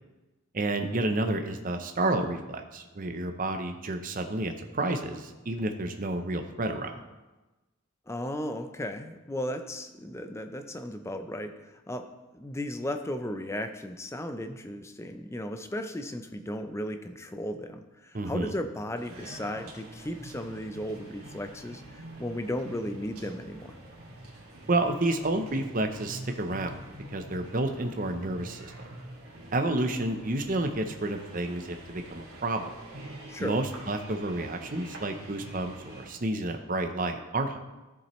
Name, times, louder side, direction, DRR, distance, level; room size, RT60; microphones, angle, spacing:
voice 1, 0.5-7.0 18.1-18.5 24.7-26.8 27.1-28.7 29.5-32.7 33.4-37.6, right 2 dB, 40° right, 5 dB, 0.7 m, -30 dB
voice 2, 8.1-12.1 12.3-23.7 33.3-33.6, left 1 dB, 10° left, 7 dB, 0.5 m, -35 dB
sound 1, 18.9-36.1, right 1 dB, 85° right, 2.3 m, -46 dB
13.0 x 7.1 x 3.1 m, 1.1 s
head